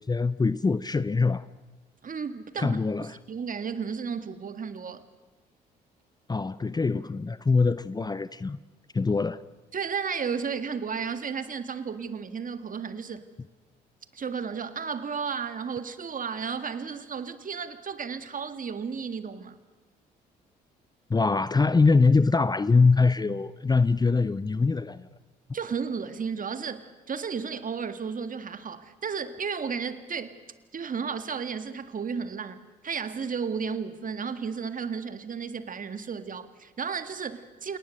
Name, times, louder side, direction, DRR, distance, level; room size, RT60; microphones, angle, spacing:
voice 1, 0.0-1.5 2.6-3.2 6.3-8.6 8.9-9.4 21.1-25.1, left 4 dB, 20° left, 0.7 m, -23 dB
voice 2, 2.0-2.8 3.3-5.0 9.7-13.2 14.1-19.6 25.5-30.4 30.7-37.8, right 6 dB, 40° right, 1.9 m, -33 dB
28.5 x 19.0 x 6.6 m
hypercardioid pair, 50°, 20 cm